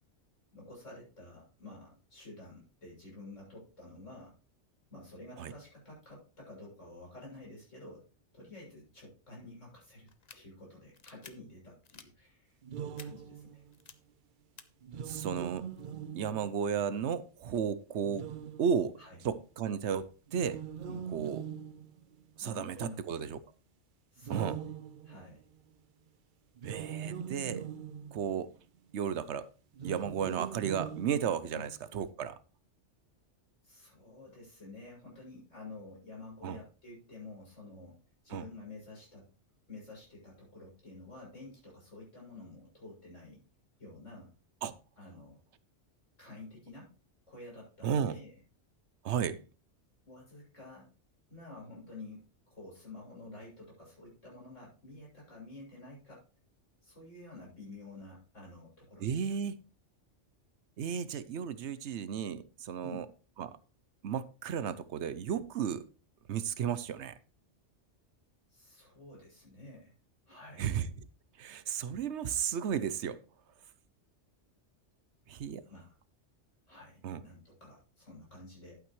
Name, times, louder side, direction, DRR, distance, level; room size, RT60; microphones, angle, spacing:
voice 1, 0.5-4.4 4.9-8.1 8.3-12.6 13.0-13.6 19.0-19.2 20.9-21.1 22.4-23.3 24.1-24.7 25.0-25.4 31.5-31.6 33.6-38.0 38.2-39.3 39.7-43.4 43.8-44.3 45.0-45.4 46.2-46.9 47.3-48.4 50.1-50.9 51.3-56.2 56.8-59.4 62.8-63.0 68.5-69.9 70.3-70.7 75.7-75.9 76.7-78.8, left 2 dB, 90° left, 7.4 m, -50 dB
sound 1, 10.1-10.4 10.9-11.3 11.8-12.1 13.0-13.1 13.7-13.9 14.6-14.7, left 6 dB, 40° left, 0.7 m, -51 dB
sound 2, 12.6-13.7 14.8-16.8 18.0-19.1 20.3-22.4 24.2-25.6 26.6-28.5 29.7-31.7, right 8 dB, 55° right, 0.6 m, -42 dB
voice 2, 15.1-15.7 16.1-18.3 18.6-19.0 19.2-20.6 21.1-21.4 22.4-23.4 24.3-24.6 26.6-27.6 28.1-28.5 28.9-29.5 29.8-32.4 36.4-36.6 38.3-38.4 44.6-44.7 47.8-48.2 49.0-49.4 59.0-59.6 60.8-63.1 63.4-63.6 64.0-65.9 66.3-67.2 70.6-70.9 71.4-73.2 75.3-75.6 77.0-77.2, right 8 dB, 70° right, 0.9 m, -33 dB
11.5 x 8.9 x 3.1 m
omnidirectional pair, 1.2 m